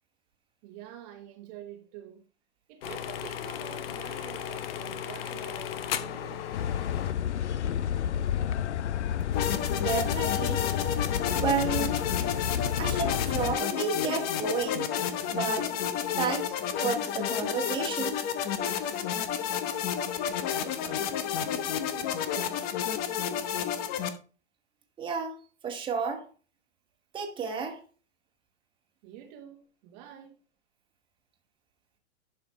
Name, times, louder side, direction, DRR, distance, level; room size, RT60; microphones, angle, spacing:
voice 1, 0.6-2.2 2.7-6.5 20.5-22.7 29.0-30.4, right 11 dB, 35° right, 1.2 m, -47 dB
sound 1, 2.8-7.1, left 10 dB, 60° left, 0.9 m, -36 dB
sound 2, 6.5-13.6, left 9 dB, 85° left, 0.6 m, -30 dB
sound 3, 9.3-24.1, left 9 dB, 25° left, 0.8 m, -31 dB
voice 2, 9.7-10.6 11.3-12.0 12.8-14.9 15.3-15.8 16.2-16.6 16.8-18.2 25.0-26.3 27.1-27.8, right 5 dB, 15° right, 1.5 m, -31 dB
11.0 x 5.0 x 3.1 m
hypercardioid pair, 130°, 34 cm